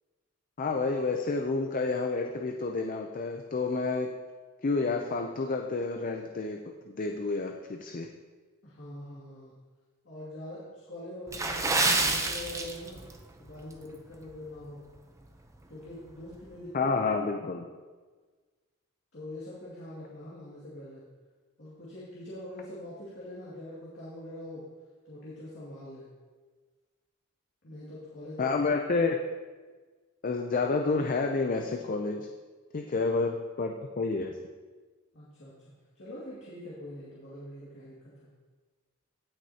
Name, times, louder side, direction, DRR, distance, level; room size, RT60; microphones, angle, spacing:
voice 1, 0.6-4.1 4.6-6.6 6.9-8.1 16.7-17.7 28.4-29.2 30.2-32.3 32.7-34.4, left 3 dB, 40° left, 4 dB, 0.5 m, -29 dB
voice 2, 8.6-9.5 10.0-13.0 13.4-14.8 15.7-17.0 19.1-21.0 21.6-24.6 25.0-26.1 27.6-28.6 35.1-35.5 35.9-38.0, left 1 dB, 60° left, -8 dB, 2.3 m, -43 dB
Water / Splash splatter, 11.3-13.2 13.5-13.7 14.3-14.5 15.0-15.1, right 3 dB, 15° right, 0.7 m, -28 dB
16.5 x 6.2 x 2.8 m, 1.4 s
head